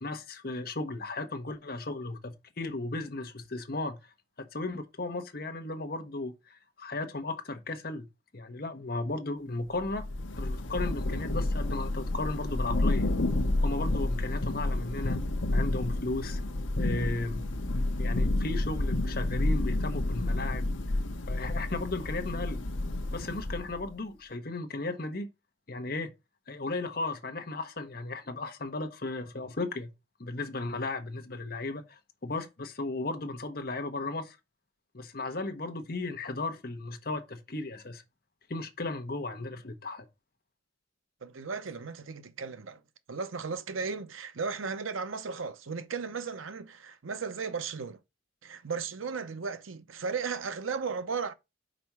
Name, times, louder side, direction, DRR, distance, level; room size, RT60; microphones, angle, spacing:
voice 1, 0.0-4.0 4.4-8.1 8.3-10.1 10.4-13.1 13.6-15.2 15.5-16.4 16.8-17.4 18.0-20.7 21.3-22.6 23.1-25.3 25.7-26.1 26.5-29.9 30.2-34.4 34.9-38.0 38.5-40.1, left 2 dB, 50° left, 0.9 m, -35 dB
Thunder / Rain, 9.8-23.9, left 2 dB, 75° left, 0.9 m, -30 dB
voice 2, 41.2-42.8 43.1-48.0 48.4-51.3, right 5 dB, 90° right, 0.8 m, -35 dB
5.2 x 4.3 x 5.9 m
head